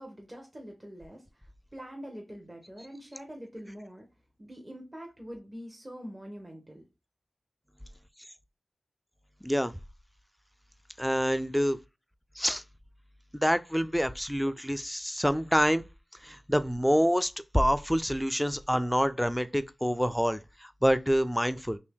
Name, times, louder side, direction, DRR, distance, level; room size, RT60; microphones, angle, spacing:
voice 1, 0.0-1.4 1.7-4.1 4.4-6.8, equal, 25° right, 0.9 m, -44 dB
voice 2, 11.0-11.8 12.4-12.6 13.3-15.9 16.2-21.8, equal, ahead, 0.3 m, -27 dB
2.8 x 2.6 x 3.5 m
cardioid pair, 40°, 0 cm